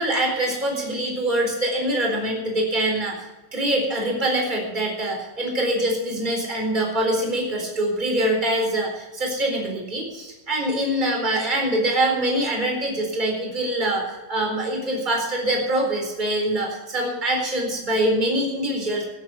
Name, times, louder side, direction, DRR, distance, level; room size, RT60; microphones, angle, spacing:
voice 1, 0.0-3.1 3.5-14.0 14.3-19.0, right 1 dB, 15° right, 0 dB, 4.1 m, -24 dB
18.5 x 9.2 x 5.7 m, 1.1 s
omnidirectional pair, 3.8 m